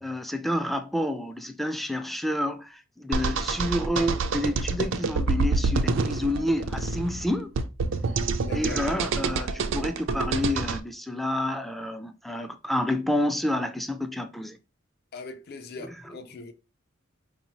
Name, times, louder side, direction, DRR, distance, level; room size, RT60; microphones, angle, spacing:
voice 1, 0.0-7.5 8.5-14.6 15.8-15.9, left 1 dB, ahead, 0.3 m, -29 dB
sound 1, 3.1-10.8, right 4 dB, 70° right, 0.4 m, -27 dB
voice 2, 8.4-8.8 15.1-16.5, left 3 dB, 55° left, 0.5 m, -40 dB
4.1 x 2.8 x 2.9 m
head